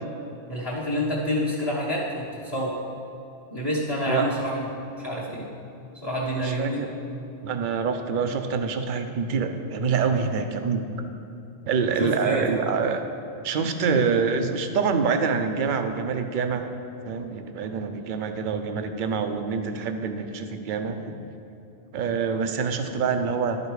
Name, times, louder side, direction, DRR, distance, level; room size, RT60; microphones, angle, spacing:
voice 1, 0.5-2.8 3.5-4.7 5.0-5.5 6.0-6.8 12.0-12.6, equal, 25° left, -6 dB, 1.0 m, -28 dB
voice 2, 6.4-6.9 7.4-11.1 11.7-13.0 13.4-16.7 17.1-21.2 21.9-23.6, right 5 dB, 55° right, 7 dB, 0.7 m, -26 dB
11.5 x 5.0 x 4.7 m, 2.9 s
omnidirectional pair, 1.2 m